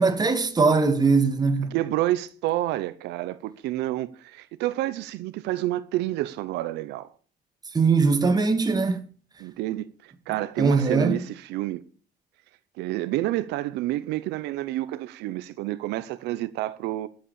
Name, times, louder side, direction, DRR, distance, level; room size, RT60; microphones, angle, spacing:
voice 1, 0.0-1.7 7.7-9.0 10.6-11.2, right 4 dB, 25° right, 2.1 m, -21 dB
voice 2, 1.7-7.1 9.4-11.8 12.8-17.1, right 15 dB, 85° right, 0.8 m, -29 dB
11.5 x 8.5 x 6.9 m
cardioid pair, 110°, 17 cm